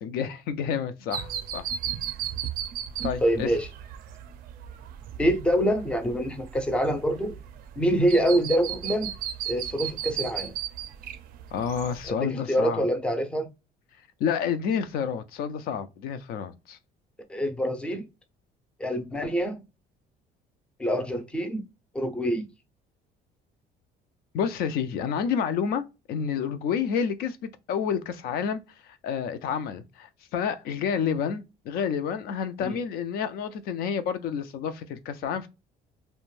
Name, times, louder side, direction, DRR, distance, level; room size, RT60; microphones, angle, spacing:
voice 1, 0.0-1.6 3.0-3.5 11.5-12.9 14.2-16.8 24.3-35.5, left 7 dB, 70° left, 0.4 m, -29 dB
sound 1, 1.1-12.1, right 10 dB, 60° right, 0.4 m, -36 dB
voice 2, 3.2-3.7 5.2-7.4 7.8-9.1 9.5-10.5 12.1-13.5 17.3-18.0 18.8-19.6 20.8-21.6 21.9-22.5 32.6-32.7, equal, 5° left, 0.4 m, -25 dB
2.5 x 2.1 x 3.1 m
cardioid pair, 150°, 17 cm